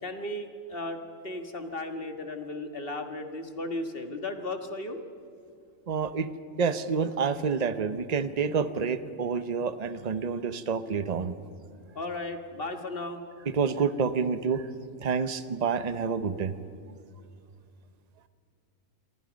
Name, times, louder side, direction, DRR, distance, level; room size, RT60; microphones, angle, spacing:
voice 1, 0.0-5.0 12.0-13.2, left 2 dB, 45° left, 6 dB, 1.8 m, -35 dB
voice 2, 5.9-6.3 6.6-11.3 13.5-14.6 15.0-16.5, right 5 dB, 35° right, 12 dB, 0.9 m, -28 dB
27.0 x 23.5 x 5.2 m, 2.4 s
omnidirectional pair, 1.4 m